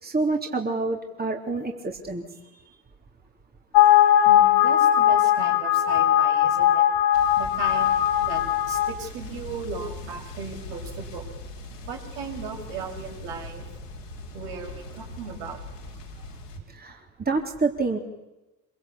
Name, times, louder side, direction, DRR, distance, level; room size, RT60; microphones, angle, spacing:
voice 1, 0.0-2.2 16.7-17.0 17.3-18.0, right 3 dB, 20° right, 2 dB, 3.8 m, -27 dB
sound 1, 3.7-8.9, left 11 dB, 55° left, 2.7 m, -19 dB
voice 2, 4.2-6.9 7.4-11.2 11.9-13.7 14.3-15.6, right 5 dB, 65° right, 2 dB, 7.0 m, -37 dB
sound 2, 7.1-16.6, left 2 dB, 85° left, 4.6 m, -40 dB
27.0 x 24.0 x 8.5 m, 1.0 s
figure-of-eight pair, 60°, 47 cm